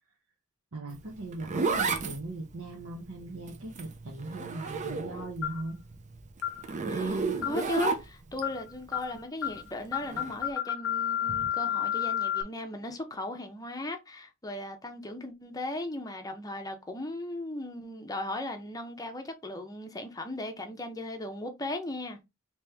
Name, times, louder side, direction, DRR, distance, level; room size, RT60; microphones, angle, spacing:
voice 1, 0.7-5.8 11.3-11.5, right 2 dB, 65° right, 0.9 m, -39 dB
Zipper (clothing), 0.9-5.4 5.7-8.4 10.0-10.3, right 4 dB, 35° right, 0.5 m, -32 dB
sound 1, 5.4-5.7 6.4-6.6 7.4-7.7 8.4-8.6 8.9-9.1 9.4-9.6 9.9-12.4, left 10 dB, 60° left, 0.4 m, -31 dB
voice 2, 6.8-22.2, left 2 dB, 15° left, 0.7 m, -37 dB
3.0 x 3.0 x 3.4 m
head